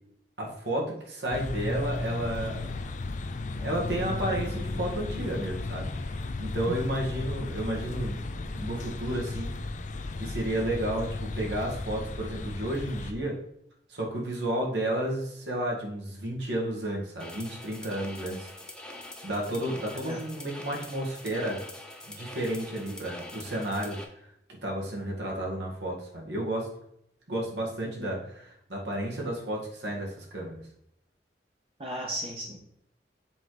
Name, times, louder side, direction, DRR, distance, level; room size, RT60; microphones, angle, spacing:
voice 1, 0.4-2.7 3.6-9.5 10.2-13.4 13.9-18.5 19.2-21.6 22.1-24.0 24.6-26.7 27.3-30.6, right 1 dB, 70° right, -1 dB, 1.9 m, -32 dB
sound 1, 1.3-13.1, left 2 dB, 45° left, 0.5 m, -34 dB
sound 2, 17.2-24.0, left 1 dB, 5° left, 1.0 m, -44 dB
voice 2, 31.8-32.6, right 1 dB, 35° right, -1 dB, 1.0 m, -35 dB
7.6 x 4.0 x 4.8 m, 0.75 s
head